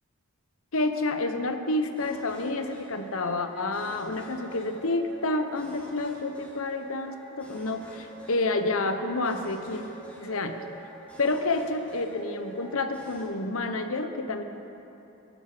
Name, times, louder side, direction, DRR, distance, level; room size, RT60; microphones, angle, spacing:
voice 1, 0.7-9.8 10.2-10.6 11.2-14.4, left 2 dB, 70° left, 8 dB, 0.9 m, -29 dB
sound 1, 2.0-13.2, right 2 dB, 5° left, 2.3 m, -46 dB
16.0 x 11.5 x 5.0 m, 2.9 s
head